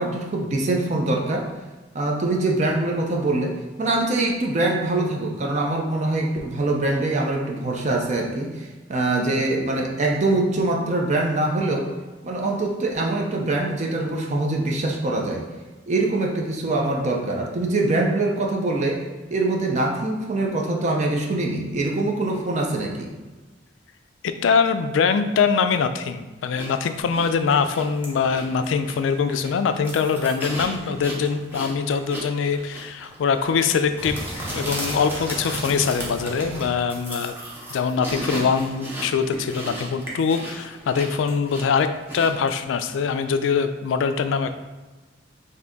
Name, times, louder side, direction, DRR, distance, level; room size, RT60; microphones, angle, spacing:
voice 1, 0.0-1.5 1.9-11.9 12.2-15.4 15.9-19.0 19.3-23.1, right 2 dB, 40° right, 0 dB, 0.5 m, -23 dB
voice 2, 24.2-34.2 34.5-37.3 37.7-41.9 42.1-44.5, left 6 dB, 75° left, 9 dB, 0.3 m, -23 dB
sound 1, 26.6-42.6, right 1 dB, 10° right, 0.8 m, -35 dB
3.8 x 2.7 x 3.4 m, 1.2 s
head